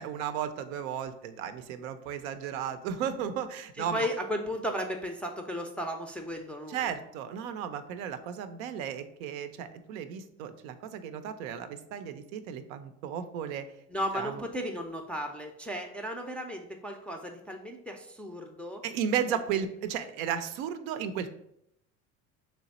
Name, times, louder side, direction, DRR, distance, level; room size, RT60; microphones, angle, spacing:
voice 1, 0.0-4.1 6.7-13.6 14.1-14.4 18.8-21.3, right 8 dB, 80° right, 10 dB, 0.5 m, -34 dB
voice 2, 3.8-6.9 13.9-18.8 19.3-19.4, equal, 5° left, 2 dB, 0.3 m, -35 dB
3.4 x 3.0 x 4.1 m, 0.77 s
supercardioid pair, 90°, 40 cm